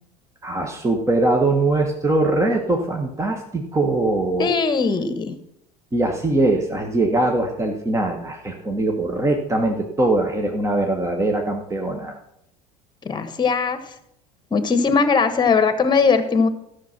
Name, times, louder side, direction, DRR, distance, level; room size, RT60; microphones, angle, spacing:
voice 1, 0.4-4.6 5.9-12.2, right 2 dB, 15° right, 2 dB, 1.5 m, -21 dB
voice 2, 4.4-5.4 13.0-13.8 14.5-16.5, left 5 dB, 25° left, 11 dB, 1.4 m, -19 dB
13.5 x 6.4 x 6.0 m, 0.76 s
figure-of-eight pair, 70°, 19 cm